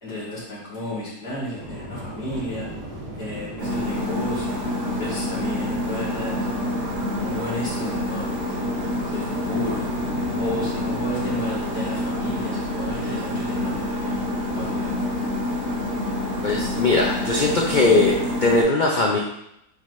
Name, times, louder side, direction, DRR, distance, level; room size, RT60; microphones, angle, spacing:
voice 1, 0.0-2.7 3.2-4.6 5.0-6.8 7.2-9.9 10.3-14.2 14.5-15.0, left 1 dB, 80° left, -9 dB, 3.4 m, -33 dB
sound 1, 1.6-11.6, right 1 dB, 25° right, 1.2 m, -38 dB
sound 2, 3.6-18.6, left 1 dB, 60° right, 2.8 m, -27 dB
voice 2, 16.4-19.2, left 3 dB, 50° left, -1 dB, 0.5 m, -20 dB
8.8 x 3.8 x 3.2 m, 0.79 s
omnidirectional pair, 1.7 m